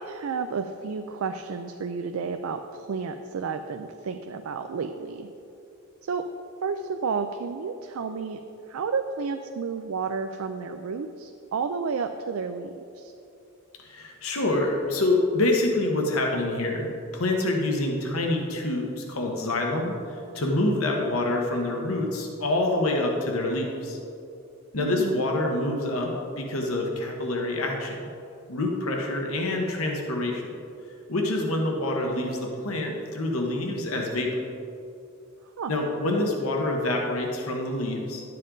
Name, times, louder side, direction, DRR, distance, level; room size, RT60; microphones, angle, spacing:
voice 1, 0.0-5.3 6.1-6.3 6.6-8.4 8.7-13.1 24.8-25.2 35.6-35.7, right 5 dB, 80° right, 7 dB, 0.4 m, -31 dB
voice 2, 13.8-24.0 24.7-28.0 28.5-30.6 31.1-34.3 35.7-38.2, left 2 dB, 85° left, 1 dB, 1.1 m, -26 dB
11.0 x 7.6 x 3.8 m, 2.7 s
head